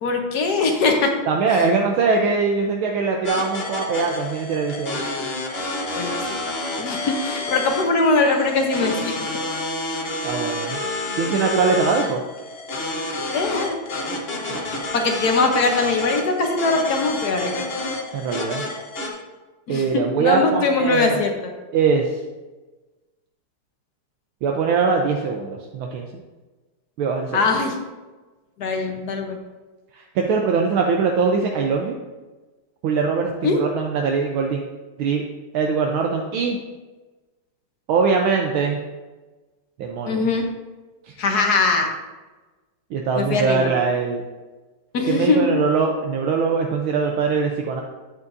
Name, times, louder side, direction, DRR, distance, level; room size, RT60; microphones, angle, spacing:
voice 1, 0.0-1.1 1.5-1.7 6.0-6.2 6.8-9.1 13.3-13.8 14.9-17.6 19.7-21.5 27.3-27.8 28.6-29.4 33.4-33.6 40.1-40.4 41.2-41.9 43.2-43.7 44.9-45.5, left 3 dB, 55° left, 3 dB, 1.3 m, -21 dB
voice 2, 1.3-5.0 10.2-10.8 11.2-12.2 14.5-14.7 18.1-18.6 19.7-21.1 21.7-22.1 24.4-26.1 27.0-27.4 29.9-32.0 32.8-34.6 35.0-35.3 35.5-36.6 37.9-38.8 39.8-40.3 41.1-41.2 42.9-44.2 45.1-47.8, right 5 dB, 75° right, 2 dB, 1.5 m, -22 dB
sound 1, 3.2-19.1, left 2 dB, 40° left, 0.9 m, -29 dB
9.4 x 8.3 x 2.6 m, 1.2 s
omnidirectional pair, 2.3 m